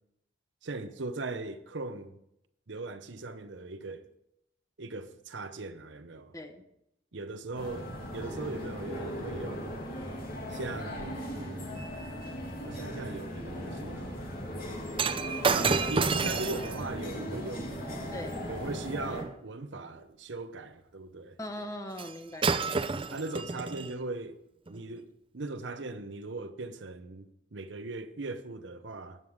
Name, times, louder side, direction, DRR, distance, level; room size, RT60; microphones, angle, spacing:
voice 1, 0.6-2.1 2.7-4.1 4.8-6.3 7.1-9.8 10.5-11.8 12.6-14.3 15.4-17.8 18.5-21.4 23.1-24.4 24.7-29.2, right 2 dB, 65° right, 0.8 m, -39 dB
sound 1, 7.5-19.2, equal, 45° left, 2.7 m, -38 dB
Shatter, 14.9-19.3 22.0-22.1 22.4-23.9 24.7-24.8, right 4 dB, 25° right, 0.5 m, -31 dB
voice 2, 15.5-15.8 18.1-18.5 21.4-22.9, left 1 dB, 15° left, 1.0 m, -41 dB
13.0 x 9.6 x 5.0 m
head